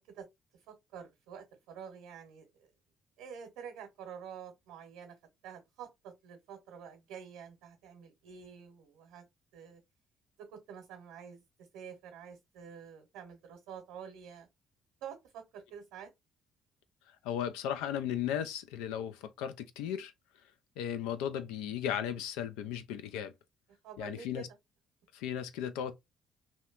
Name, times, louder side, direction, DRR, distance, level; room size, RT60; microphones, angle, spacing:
voice 1, 0.7-2.7 3.2-5.1 5.4-9.2 9.5-9.8 10.5-11.4 11.7-14.5 15.0-16.1 23.8-24.5, right 7 dB, 85° right, 0.8 m, -48 dB
voice 2, 17.2-20.1 20.8-23.3 24.0-24.5 25.1-25.9, left 9 dB, 85° left, 0.3 m, -36 dB
2.8 x 2.2 x 2.3 m
supercardioid pair, 65°, 0 cm